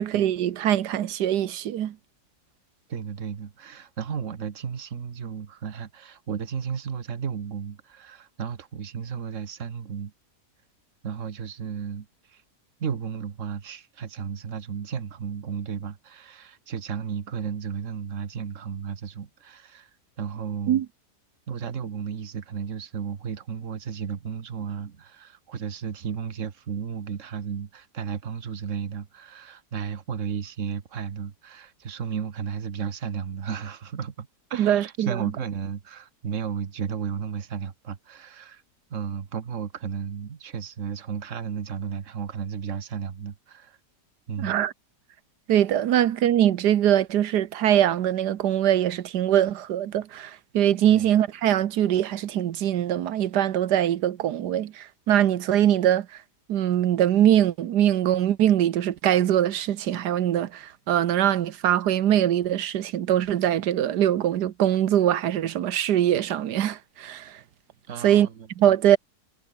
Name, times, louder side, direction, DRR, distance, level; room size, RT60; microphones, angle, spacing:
voice 1, 0.0-1.9 20.7-20.8 34.6-35.2 44.4-44.7 45.5-56.1 56.5-67.4 68.0-68.3 68.6-69.0, right 11 dB, 90° right, 1.5 m, -22 dB
voice 2, 2.9-10.1 11.0-12.4 12.8-19.9 20.2-20.8 21.5-38.6 38.9-43.8 44.3-44.6 45.9-46.1 50.9-51.1 67.9-68.7, right 7 dB, 50° right, 1.7 m, -34 dB
omnidirectional pair, 1.7 m